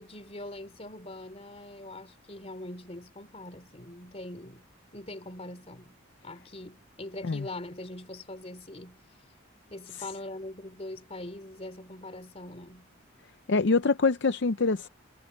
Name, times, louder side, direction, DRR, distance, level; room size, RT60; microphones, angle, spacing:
voice 1, 0.0-4.6 4.9-9.0 9.7-12.9, left 1 dB, 30° left, 3.1 m, -42 dB
voice 2, 13.5-14.9, left 4 dB, 60° left, 0.6 m, -25 dB
head